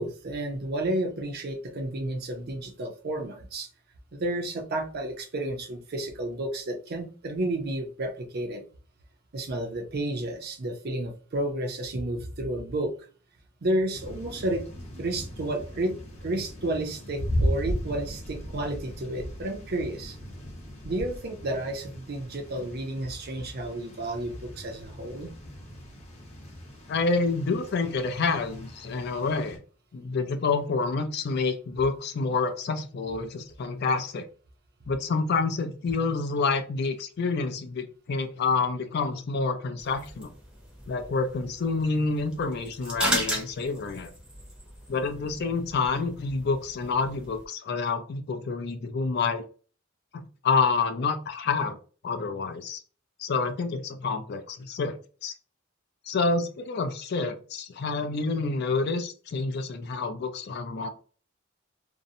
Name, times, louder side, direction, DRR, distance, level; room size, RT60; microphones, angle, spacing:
voice 1, 0.0-3.7 4.1-8.6 9.3-12.9 13.6-14.6 14.9-16.0 16.2-20.2 20.8-25.3, right 1 dB, 50° right, 4 dB, 0.5 m, -31 dB
sound 1, 13.9-29.6, equal, 35° left, 0.8 m, -37 dB
voice 2, 26.9-29.6 29.9-34.3 34.9-40.3 40.9-44.1 44.9-49.4 50.1-51.8 52.0-52.8 53.2-55.3 56.1-60.9, left 4 dB, 55° left, 8 dB, 0.4 m, -28 dB
sound 2, 39.8-47.5, right 1 dB, 5° right, 0.6 m, -36 dB
2.6 x 2.0 x 2.6 m, 0.39 s
head